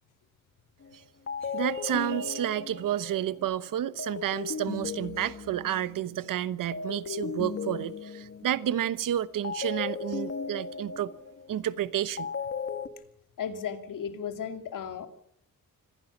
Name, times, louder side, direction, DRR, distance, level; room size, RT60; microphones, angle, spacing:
sound 1, 0.8-0.9 1.3-6.2 6.7-8.9 9.4-12.9, left 6 dB, 45° left, 1.8 m, -36 dB
voice 1, 1.5-11.1 11.5-12.3, right 11 dB, 85° right, 1.0 m, -30 dB
voice 2, 13.4-15.1, left 7 dB, 80° left, 2.5 m, -35 dB
25.5 x 16.0 x 7.2 m
wide cardioid pair, 130°, 32 cm